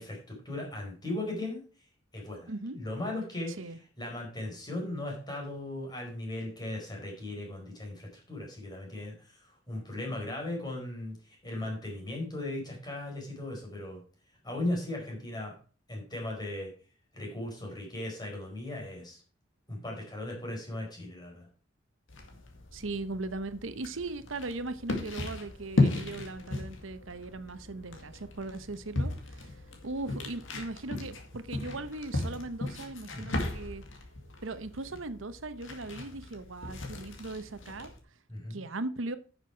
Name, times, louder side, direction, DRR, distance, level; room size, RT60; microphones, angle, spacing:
voice 1, 0.0-1.6 2.1-3.6 4.0-14.0 14.4-15.6 15.9-16.7 17.1-19.2 19.7-21.5 33.1-33.4 38.3-38.6, left 1 dB, 20° left, 0 dB, 4.6 m, -37 dB
voice 2, 2.5-2.8 3.6-3.8 22.7-29.5 29.8-33.8 34.4-37.9 38.5-39.2, right 2 dB, 75° right, 12 dB, 0.9 m, -38 dB
sound 1, 22.1-38.0, left 2 dB, 70° left, 2.1 m, -36 dB
10.5 x 6.8 x 4.6 m, 0.38 s
head